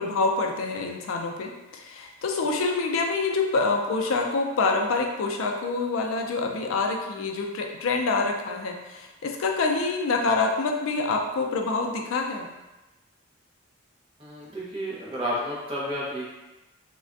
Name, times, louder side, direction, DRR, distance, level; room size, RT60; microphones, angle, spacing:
voice 1, 0.0-12.5, left 3 dB, 80° left, 2 dB, 0.4 m, -26 dB
voice 2, 14.2-16.3, equal, 25° right, -6 dB, 0.7 m, -31 dB
3.2 x 2.1 x 2.5 m, 1.1 s
head